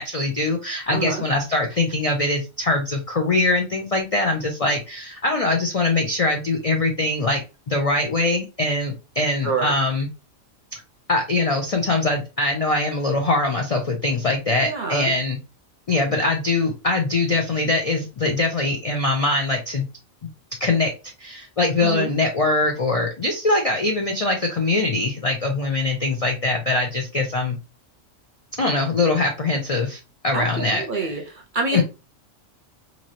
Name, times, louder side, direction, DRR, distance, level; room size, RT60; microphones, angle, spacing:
voice 1, 0.0-7.4 7.7-10.1 10.7-10.8 11.1-15.4 15.9-19.9 20.6-20.9 21.2-27.6 28.6-31.2 31.7-31.8, left 2 dB, 55° left, 2 dB, 0.4 m, -22 dB
voice 2, 0.9-1.3 9.4-9.7 14.6-15.2 21.8-22.1 30.3-31.8, right 4 dB, 50° right, 2 dB, 0.6 m, -27 dB
3.0 x 2.7 x 2.6 m, 0.30 s
omnidirectional pair, 1.3 m